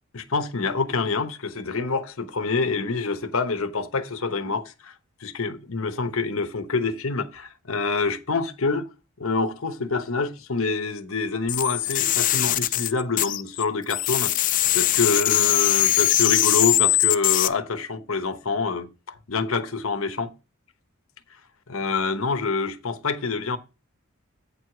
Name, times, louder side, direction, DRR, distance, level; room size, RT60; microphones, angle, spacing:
voice 1, 0.1-4.9 5.2-8.9 9.2-14.3 14.7-20.3 21.7-23.6, left 4 dB, 70° left, 1.0 m, -26 dB
sound 1, 11.5-13.6 13.9-17.5, left 13 dB, 40° left, 0.4 m, -21 dB
8.5 x 4.8 x 5.9 m
head